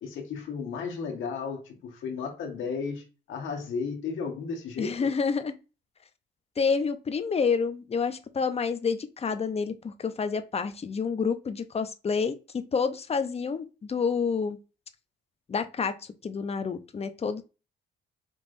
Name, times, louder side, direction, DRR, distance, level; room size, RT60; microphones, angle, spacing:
voice 1, 0.0-5.1, left 5 dB, 75° left, 1.5 m, -34 dB
voice 2, 4.8-5.5 6.6-12.3 12.7-14.6 15.5-15.9 16.2-17.4, left 5 dB, 30° left, 0.7 m, -28 dB
5.3 x 3.2 x 2.6 m
cardioid pair, 90°, 20 cm